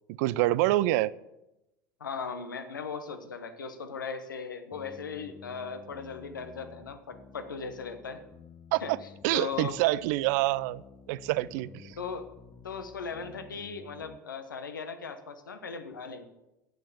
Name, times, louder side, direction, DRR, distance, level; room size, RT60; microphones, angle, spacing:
voice 1, 0.2-1.1 8.7-9.0 9.2-10.8 11.1-12.0, right 17 dB, 60° right, 20 dB, 0.5 m, -26 dB
voice 2, 2.0-8.2 8.8-8.9 9.3-9.8 12.0-12.3 12.6-16.3, left 5 dB, 85° left, 8 dB, 1.2 m, -38 dB
sound 1, 4.7-14.2, left 7 dB, 25° left, 0.7 m, -52 dB
10.5 x 8.8 x 6.9 m, 0.92 s
figure-of-eight pair, 75°, 10 cm